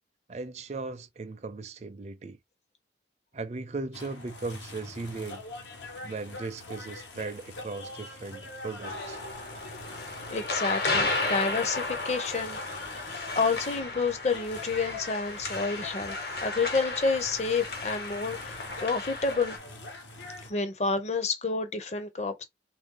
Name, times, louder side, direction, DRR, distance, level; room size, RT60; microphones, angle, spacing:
voice 1, 0.3-2.4 3.3-5.4 6.0-9.2, right 3 dB, 40° right, 0.4 m, -37 dB
sound 1, 3.9-20.5, left 2 dB, 85° left, 1.2 m, -43 dB
sound 2, 8.8-19.6, left 3 dB, 65° left, 1.2 m, -34 dB
voice 2, 10.3-12.6 13.4-19.6 20.5-22.4, left 4 dB, 40° left, 0.7 m, -29 dB
3.4 x 2.6 x 3.7 m
head